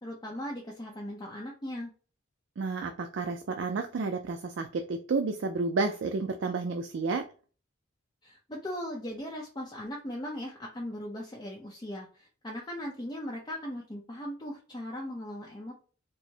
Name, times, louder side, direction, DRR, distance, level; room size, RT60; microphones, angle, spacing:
voice 1, 0.0-1.9 8.2-15.7, left 1 dB, 20° left, -2 dB, 0.6 m, -38 dB
voice 2, 2.6-7.3, right 4 dB, 65° right, 6 dB, 0.4 m, -31 dB
4.5 x 2.0 x 2.7 m, 0.37 s
head